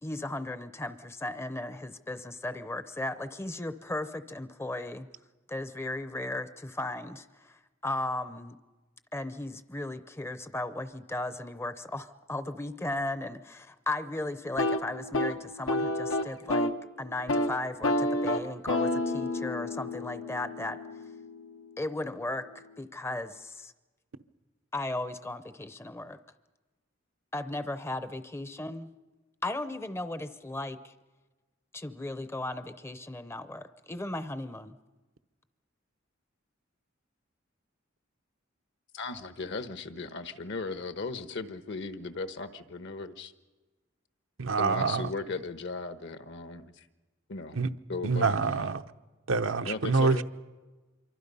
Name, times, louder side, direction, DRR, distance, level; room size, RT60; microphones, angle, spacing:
voice 1, 0.0-5.1 5.5-8.6 9.1-16.7 17.0-20.8 21.8-22.5 22.8-23.7 24.7-26.2 27.3-28.9 29.4-30.9 31.7-34.8, left 2 dB, 15° left, 0.6 m, -36 dB
sound 1, 14.5-16.8 17.1-17.5 17.8-21.7, left 1 dB, 90° left, 1.1 m, -30 dB
voice 2, 38.9-43.3 44.6-46.8 47.3-47.6 47.9-48.6 49.6-50.2, left 3 dB, 65° left, 1.1 m, -37 dB
voice 3, 44.4-45.1 47.5-47.7 48.0-48.8 49.3-50.2, right 4 dB, 85° right, 0.9 m, -26 dB
26.5 x 24.0 x 5.5 m
head